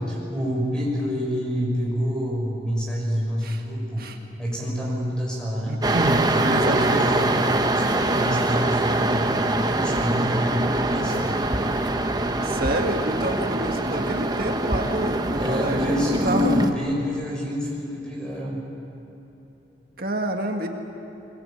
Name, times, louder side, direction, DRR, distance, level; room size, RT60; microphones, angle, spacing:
voice 1, 0.1-4.1 4.4-5.8 6.1-7.4 7.7-9.3 9.6-11.4 15.3-18.6, equal, 5° left, -3 dB, 6.2 m, -27 dB
voice 2, 5.7-7.1 12.4-16.6 20.0-20.7, right 1 dB, 55° right, 3 dB, 1.7 m, -28 dB
sound 1, 5.8-16.7, right 2 dB, 20° right, 1.0 m, -23 dB
22.5 x 21.5 x 8.9 m, 3.0 s
head